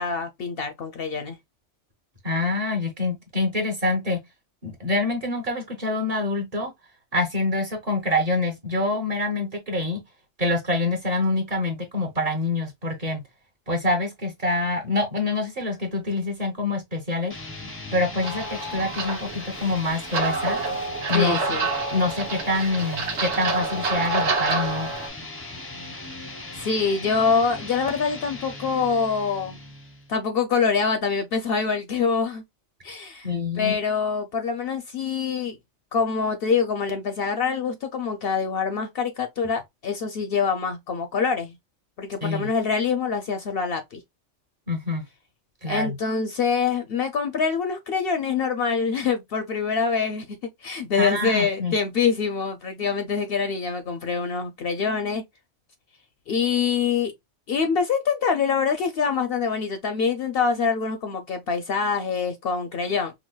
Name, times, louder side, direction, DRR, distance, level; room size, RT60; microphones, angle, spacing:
voice 1, 0.0-1.4 21.1-21.7 26.6-29.6 30.1-32.4 32.8-33.3 33.6-35.6 35.9-41.6 42.0-44.0 45.7-50.2 50.6-55.2 56.3-57.1 57.5-63.1, left 5 dB, 60° left, 0.7 m, -25 dB
voice 2, 2.2-4.2 4.6-6.7 7.1-10.0 10.4-13.2 13.7-17.4 17.9-20.6 21.1-21.4 21.9-24.9 33.2-33.8 42.2-42.5 44.7-45.0 45.6-46.0 51.0-51.7, left 2 dB, 35° right, 0.8 m, -26 dB
sound 1, 17.3-30.1, left 2 dB, 20° left, 0.4 m, -39 dB
sound 2, 18.2-25.1, right 3 dB, 65° right, 1.2 m, -28 dB
4.8 x 2.0 x 2.2 m
omnidirectional pair, 1.2 m